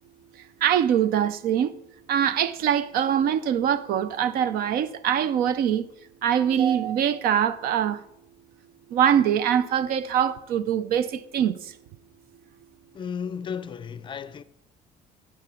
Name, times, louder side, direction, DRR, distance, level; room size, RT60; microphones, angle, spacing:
voice 1, 0.6-1.7 2.1-5.8 6.2-8.0 8.9-11.5, right 9 dB, 65° right, 0.5 m, -23 dB
voice 2, 12.9-14.4, left 7 dB, 30° left, 0.4 m, -34 dB
9.6 x 7.6 x 4.9 m
cardioid pair, 130°, 16 cm